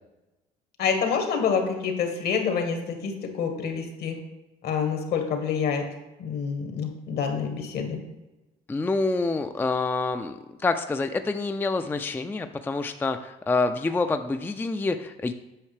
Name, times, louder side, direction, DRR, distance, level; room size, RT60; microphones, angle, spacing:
voice 1, 0.8-4.2 4.6-5.9 6.2-8.0, left 6 dB, 65° left, 5 dB, 1.5 m, -27 dB
voice 2, 8.7-15.3, left 3 dB, 10° left, 8 dB, 0.4 m, -27 dB
8.6 x 5.6 x 3.3 m, 1.0 s
supercardioid pair, 85°, 17 cm